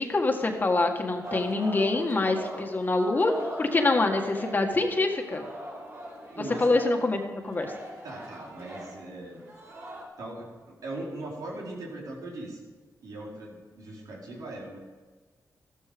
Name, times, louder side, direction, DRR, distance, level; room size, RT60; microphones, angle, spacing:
voice 1, 0.0-3.3 3.6-5.4 6.6-7.7, left 2 dB, 30° left, 3 dB, 1.8 m, -25 dB
Singing, 1.2-4.8 5.1-10.0, right 1 dB, 45° right, 5.4 m, -41 dB
voice 2, 6.3-6.9 8.0-9.4 10.2-12.7 13.0-14.8, right 2 dB, 80° right, -3 dB, 4.7 m, -40 dB
15.0 x 14.0 x 5.3 m, 1.4 s
wide cardioid pair, 135°, 6 cm